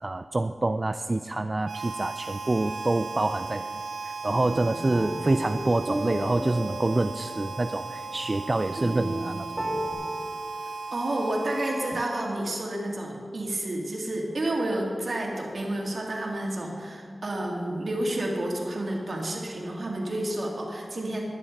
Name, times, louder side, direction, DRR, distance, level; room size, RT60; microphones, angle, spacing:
voice 1, 0.0-9.5, right 2 dB, 35° right, 10 dB, 0.3 m, -27 dB
Harmonica, 1.6-12.7, right 4 dB, 80° right, 0.9 m, -37 dB
sound 1, 4.3-9.9, equal, 15° right, 2.5 m, -34 dB
voice 2, 10.9-21.2, right 1 dB, 60° right, -1 dB, 2.3 m, -30 dB
11.5 x 9.9 x 5.3 m, 2.2 s
wide cardioid pair, 60°, 0 cm